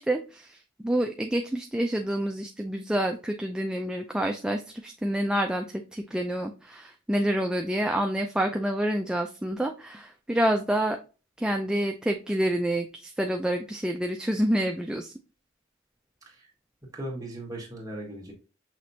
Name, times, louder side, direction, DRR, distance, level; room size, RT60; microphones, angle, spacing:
voice 1, 0.0-5.6 5.9-11.0 11.4-15.1, right 1 dB, 5° right, 3 dB, 0.3 m, -28 dB
voice 2, 16.9-18.3, right 1 dB, 20° right, -2 dB, 1.6 m, -38 dB
5.9 x 3.1 x 2.7 m, 0.33 s
head